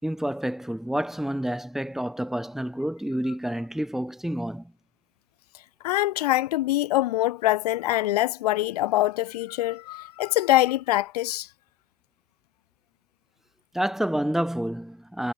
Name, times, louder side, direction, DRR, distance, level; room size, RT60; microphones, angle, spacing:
voice 1, 0.0-4.7 13.7-15.3, right 1 dB, ahead, 5.9 m, -29 dB
voice 2, 5.8-11.5, left 16 dB, 75° left, 1.9 m, -24 dB
supercardioid pair, 125°, 20 cm